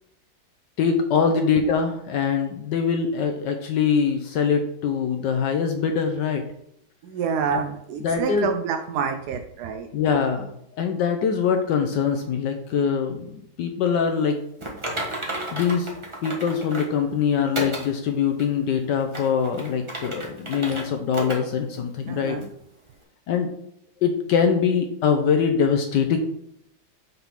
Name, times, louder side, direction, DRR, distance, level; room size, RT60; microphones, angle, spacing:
voice 1, 0.8-6.4 7.5-7.6 8.0-8.5 9.9-10.5 10.8-14.4 15.5-15.9 16.2-22.4 23.3-23.5 24.0-26.2, left 6 dB, 70° left, 5 dB, 1.1 m, -23 dB
voice 2, 7.0-9.9 22.1-22.5, right 6 dB, 75° right, 5 dB, 0.9 m, -28 dB
Typing, 14.6-17.0 17.5-17.9 18.4-18.5 19.0-20.8 21.1-21.4 21.7-21.8 22.4-22.5, right 1 dB, 20° right, 0.8 m, -32 dB
5.8 x 3.6 x 5.7 m, 0.74 s
omnidirectional pair, 2.2 m